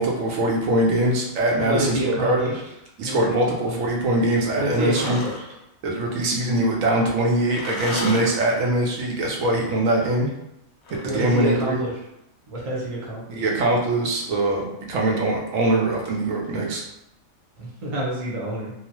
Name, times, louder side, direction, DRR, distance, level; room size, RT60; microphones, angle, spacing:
voice 1, 0.0-2.5 3.0-5.2 5.8-10.3 10.9-11.8 13.3-16.8, right 1 dB, 75° right, -1 dB, 1.0 m, -22 dB
voice 2, 1.6-2.6 3.0-3.8 4.5-5.4 11.0-11.9 12.5-13.4 17.6-18.7, right 1 dB, 30° right, -4 dB, 0.7 m, -28 dB
sound 1, 4.9-5.6 7.5-8.8 10.8-11.9, left 3 dB, 65° left, 0.8 m, -34 dB
2.8 x 2.1 x 2.9 m, 0.83 s
omnidirectional pair, 1.4 m